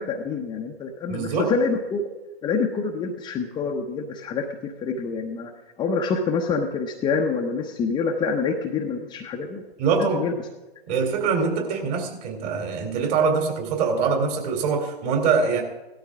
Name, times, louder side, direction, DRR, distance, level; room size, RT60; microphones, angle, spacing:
voice 1, 0.0-2.0 2.4-5.5 5.8-9.6 10.0-10.3, left 4 dB, 15° left, 1 dB, 0.8 m, -26 dB
voice 2, 1.1-1.5 9.8-10.2 10.9-15.6, right 5 dB, 40° right, 3 dB, 3.4 m, -23 dB
17.0 x 13.0 x 3.7 m, 1.1 s
hypercardioid pair, 130°, 31 cm